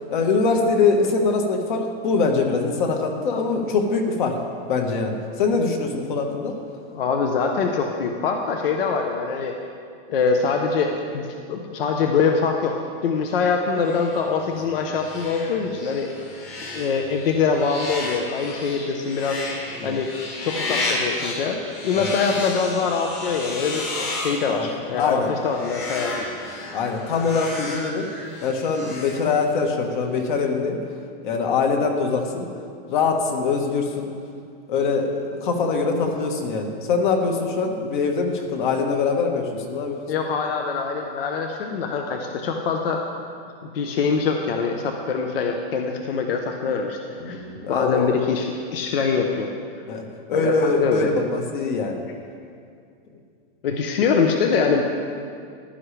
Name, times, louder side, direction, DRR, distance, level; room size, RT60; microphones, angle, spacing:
voice 1, 0.1-4.4 4.7-6.6 19.8-19.9 21.9-22.1 24.5-24.7 24.9-25.3 26.7-28.1 28.4-30.8 31.2-32.5 32.9-34.1 34.7-40.1 47.2-48.2 49.9-50.0 50.3-52.0, left 4 dB, 55° left, 3 dB, 1.5 m, -23 dB
voice 2, 6.9-9.6 10.1-12.8 13.0-16.1 16.6-20.1 20.4-21.6 21.8-26.3 40.1-43.0 43.6-47.0 47.2-47.4 47.7-49.5 50.3-51.2 53.6-54.8, left 5 dB, 70° left, 3 dB, 1.0 m, -24 dB
sound 1, 13.8-29.8, left 2 dB, 20° left, 1.2 m, -33 dB
15.0 x 11.5 x 3.3 m, 2.3 s
supercardioid pair, 180°, 30 cm